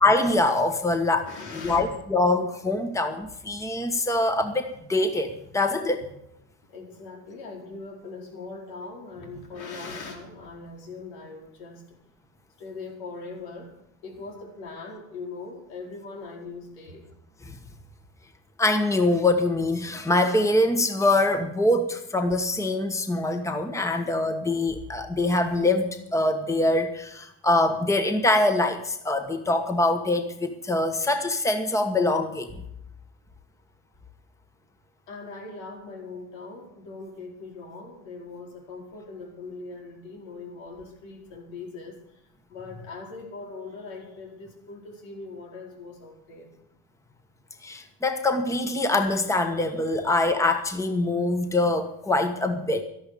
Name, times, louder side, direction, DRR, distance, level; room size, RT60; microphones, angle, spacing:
voice 1, 0.0-1.3 1.5-6.0 17.5-17.6 18.6-32.5 47.6-52.8, left 2 dB, 10° left, 7 dB, 1.3 m, -24 dB
voice 2, 1.2-2.0 4.4-4.5 6.7-12.0 12.6-13.7 14.0-17.1 35.1-42.0 42.5-46.5, left 3 dB, 80° left, 0 dB, 4.6 m, -40 dB
13.0 x 11.5 x 6.8 m, 0.78 s
supercardioid pair, 115°, 37 cm